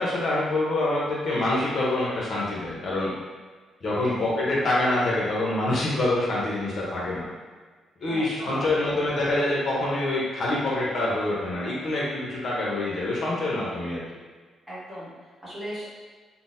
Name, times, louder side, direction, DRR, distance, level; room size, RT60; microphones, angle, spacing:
voice 1, 0.0-3.1 3.8-7.3 8.0-14.0, left 2 dB, 50° left, -6 dB, 0.7 m, -26 dB
voice 2, 4.0-4.3 8.0-9.0 14.7-15.9, equal, 15° right, -9 dB, 1.0 m, -38 dB
3.7 x 2.0 x 2.6 m, 1.5 s
cardioid pair, 130°, 0 cm